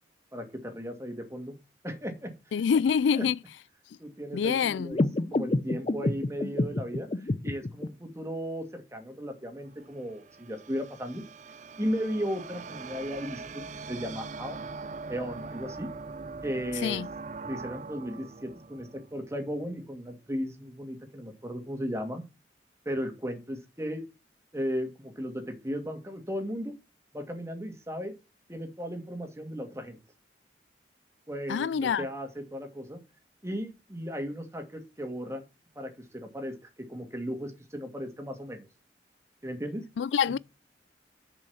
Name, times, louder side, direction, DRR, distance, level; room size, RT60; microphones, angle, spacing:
voice 1, 0.3-1.6 1.8-2.5 3.1-3.3 4.0-5.0 5.3-11.2 11.8-14.6 15.1-15.9 16.4-17.0 17.4-22.2 22.9-24.1 24.5-26.8 27.1-28.1 28.5-30.0 31.3-33.0 33.4-35.4 35.8-38.7 39.4-39.8 40.3-40.4, equal, 15° right, 2.1 m, -36 dB
voice 2, 2.5-3.4 4.3-4.9 16.8-17.1 31.5-32.1 40.0-40.4, left 7 dB, 85° left, 0.3 m, -26 dB
sound 1, 4.9-7.9, left 2 dB, 35° left, 0.5 m, -29 dB
sound 2, 9.6-19.9, right 4 dB, 40° right, 0.6 m, -42 dB
7.1 x 5.2 x 7.1 m
head